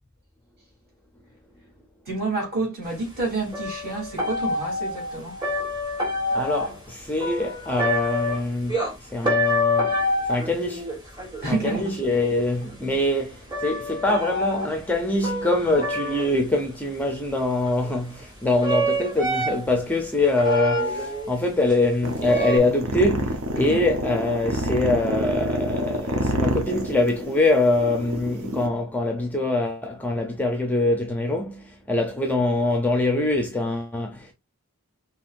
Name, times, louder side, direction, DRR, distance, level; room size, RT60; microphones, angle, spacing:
voice 1, 2.1-5.4 11.4-11.9 23.6-23.8, right 3 dB, 45° right, 3.0 m, -29 dB
sound 1, 3.1-3.2 3.5-6.9 7.2-8.9 9.2-12.7 13.5-16.5 17.6-18.2 18.6-19.7 20.2-21.3 21.7-21.8 22.3-22.6, left 1 dB, 20° right, 1.5 m, -27 dB
voice 2, 6.3-9.9 10.3-10.9 11.5-34.3, left 2 dB, 5° left, 0.6 m, -24 dB
sound 2, 22.0-28.7, right 1 dB, 65° right, 0.9 m, -28 dB
5.4 x 2.9 x 2.5 m
head